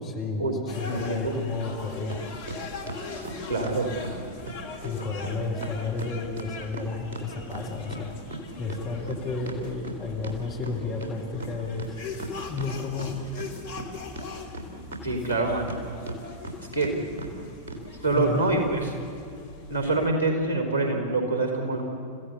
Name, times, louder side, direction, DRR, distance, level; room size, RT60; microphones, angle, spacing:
voice 1, 0.0-2.2 4.8-8.1 8.6-12.0 12.5-13.2 18.1-18.4, left 4 dB, 30° left, 1 dB, 3.9 m, -32 dB
sound 1, 0.7-20.1, left 3 dB, 55° left, 2.9 m, -41 dB
voice 2, 0.9-1.4 3.1-3.9 15.0-15.7 16.7-16.9 18.0-18.9 19.7-21.8, right 2 dB, 90° left, 3 dB, 4.1 m, -26 dB
sound 2, 2.1-2.2 2.5-4.2 4.5-4.6 4.8-5.0 5.2-5.3 5.6-8.0 8.3-11.1 11.4-11.5 11.8-12.7 13.0-13.9 14.2-15.8 16.1-16.5 16.8-16.9 17.2-17.3 17.7-17.8 18.1-18.3, right 2 dB, 60° right, 3.8 m, -37 dB
29.5 x 16.0 x 8.4 m, 2.6 s
figure-of-eight pair, 90°, 0 cm